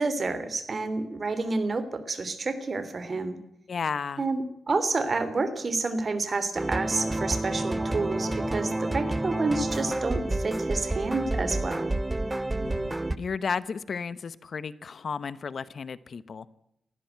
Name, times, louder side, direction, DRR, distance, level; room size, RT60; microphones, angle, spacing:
voice 1, 0.0-3.4 4.2-11.9, right 3 dB, 45° right, 12 dB, 3.2 m, -29 dB
voice 2, 3.7-4.2 12.6-16.5, left 5 dB, 60° left, 16 dB, 1.0 m, -33 dB
sound 1, 6.6-13.2, right 1 dB, 15° right, 0.9 m, -29 dB
19.5 x 15.5 x 9.2 m, 0.81 s
wide cardioid pair, 100°, 0 cm